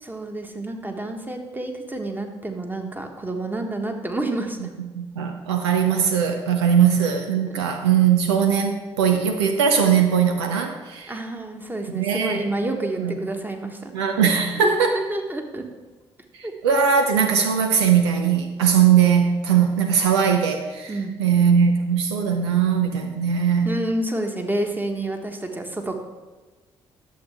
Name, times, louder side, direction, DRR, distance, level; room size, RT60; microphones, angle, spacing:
voice 1, 0.0-4.7 7.5-7.6 11.1-13.9 14.6-15.6 16.4-16.5 20.9-21.1 23.6-26.0, right 1 dB, 15° right, 4 dB, 1.5 m, -29 dB
voice 2, 4.9-11.1 11.9-12.4 13.0-13.1 13.9-15.0 16.4-20.9 21.2-23.8, right 7 dB, 80° right, 5 dB, 0.6 m, -20 dB
11.5 x 7.3 x 3.6 m, 1.2 s
figure-of-eight pair, 45°, 14 cm